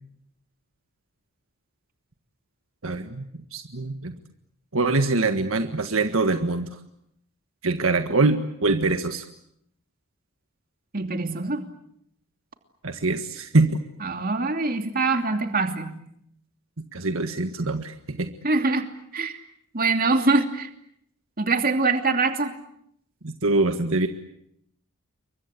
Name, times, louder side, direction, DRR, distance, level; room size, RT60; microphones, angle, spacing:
voice 1, 2.8-3.2 3.5-4.1 4.7-6.7 7.6-9.2 12.8-13.8 16.9-18.3 23.2-24.1, right 3 dB, 70° right, 7 dB, 1.6 m, -24 dB
voice 2, 10.9-11.6 14.0-16.0 18.4-18.9 19.1-19.4 19.7-20.7 21.4-22.5, right 3 dB, 40° right, 6 dB, 2.8 m, -23 dB
29.0 x 23.5 x 8.3 m, 0.75 s
head